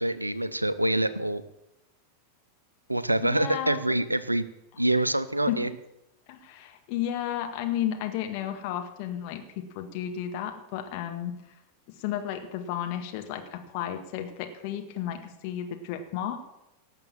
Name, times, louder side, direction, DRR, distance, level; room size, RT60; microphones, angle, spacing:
voice 1, 0.0-1.4 2.9-4.5 4.8-5.7, right 1 dB, 85° right, 15 dB, 0.7 m, -26 dB
voice 2, 3.2-3.8 5.5-5.7 6.3-9.4 9.8-11.3 12.0-16.4, left 10 dB, 45° left, 5 dB, 1.9 m, -33 dB
18.0 x 6.8 x 7.3 m, 0.89 s
figure-of-eight pair, 90°, 0 cm